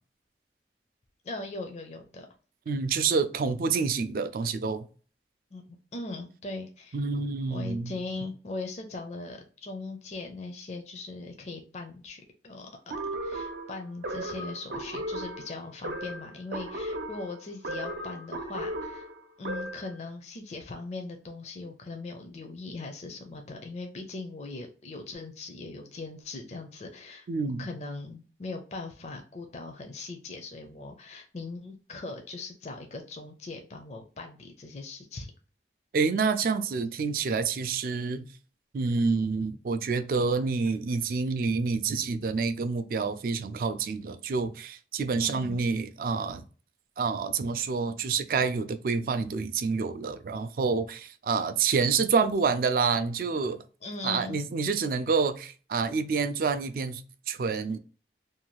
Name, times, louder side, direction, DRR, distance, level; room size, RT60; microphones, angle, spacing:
voice 1, 1.2-2.3 5.5-5.6 5.9-7.0 7.5-12.7 13.2-19.1 19.4-27.3 27.6-35.3 45.2-45.6 53.8-54.4, left 3 dB, 40° left, 0.4 m, -40 dB
voice 2, 2.7-4.9 6.9-7.9 27.3-27.7 35.9-38.3 38.7-46.4 47.0-53.6 54.0-57.8, right 5 dB, 50° right, 0.3 m, -28 dB
sound 1, 12.9-19.9, right 1 dB, 85° right, 0.7 m, -36 dB
2.6 x 2.3 x 2.9 m
head